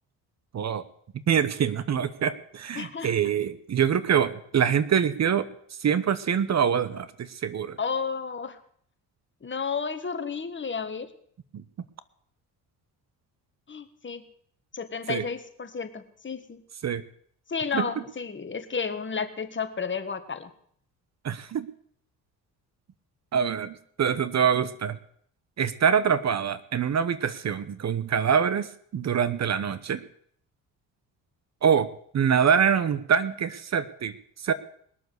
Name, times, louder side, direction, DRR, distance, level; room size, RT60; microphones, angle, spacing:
voice 1, 0.5-0.8 1.3-5.5 5.8-7.8 11.5-11.6 15.1-15.3 16.8-17.0 17.7-17.9 21.2-21.7 23.3-25.0 25.6-30.0 31.6-34.1 34.4-34.5, right 7 dB, 45° right, 15 dB, 1.0 m, -25 dB
voice 2, 2.7-3.1 7.8-8.6 9.4-11.1 13.7-14.2 14.7-16.6 17.5-20.5, left 5 dB, 30° left, 9 dB, 1.6 m, -32 dB
20.5 x 7.0 x 8.1 m, 0.63 s
cardioid pair, 85°, 36 cm